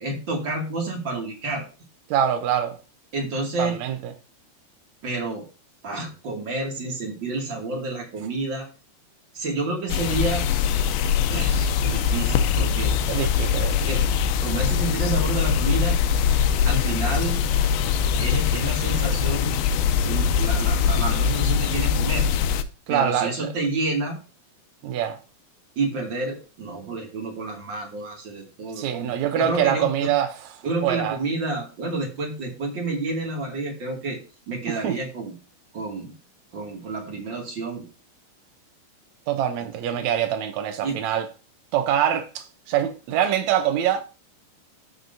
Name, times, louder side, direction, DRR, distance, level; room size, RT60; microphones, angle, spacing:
voice 1, 0.0-1.6 3.1-3.8 5.0-5.4 5.8-8.7 9.3-10.5 11.3-13.0 13.8-14.0 14.4-16.0 16.7-17.4 18.2-19.6 20.0-22.3 22.9-24.2 25.8-30.1 30.6-34.2 34.5-35.3 35.7-36.1 36.5-37.8 40.8-41.0, right 2 dB, 35° right, 2.5 m, -29 dB
voice 2, 2.1-2.8 3.6-4.0 13.1-13.9 22.9-23.5 24.8-25.2 28.8-30.3 30.8-31.2 34.7-35.0 39.3-41.3 41.7-44.0, right 10 dB, 85° right, 1.6 m, -24 dB
sound 1, 9.9-22.6, left 7 dB, 80° left, 2.6 m, -22 dB
14.0 x 6.1 x 2.7 m
omnidirectional pair, 4.5 m